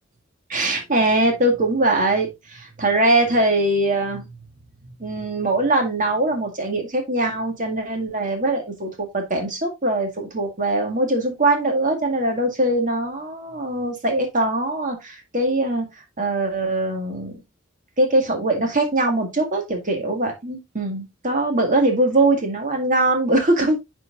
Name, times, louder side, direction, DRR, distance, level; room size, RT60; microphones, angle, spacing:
voice 1, 0.5-4.3 4.8-15.9 16.2-17.4 18.0-23.8, right 2 dB, 40° right, 1.9 m, -22 dB
9.8 x 4.6 x 2.4 m
head